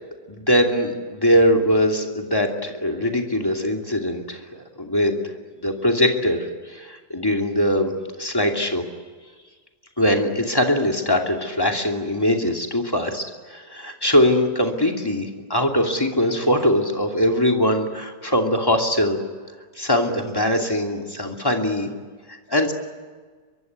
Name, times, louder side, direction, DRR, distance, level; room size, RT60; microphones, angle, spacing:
voice 1, 0.3-4.4 4.8-5.1 5.6-7.9 8.2-8.8 10.0-19.2 19.8-21.9 22.5-22.7, equal, 10° left, 2 dB, 2.7 m, -21 dB
23.5 x 23.0 x 9.5 m, 1.5 s
omnidirectional pair, 1.9 m